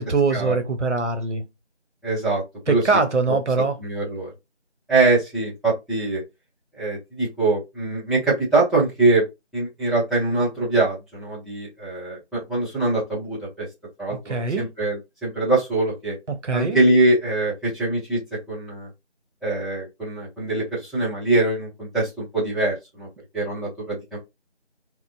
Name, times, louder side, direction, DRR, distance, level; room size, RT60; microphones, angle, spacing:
voice 1, 0.0-1.4 2.7-3.7 14.1-14.7 16.4-16.8, right 4 dB, 85° right, 0.8 m, -22 dB
voice 2, 2.0-2.8 3.8-4.3 4.9-6.2 6.8-9.2 9.5-13.7 14.0-16.1 16.5-18.2 18.5-18.9 19.4-23.1 23.3-24.2, right 2 dB, ahead, 0.8 m, -23 dB
3.0 x 2.0 x 2.4 m
figure-of-eight pair, 180°, 35 cm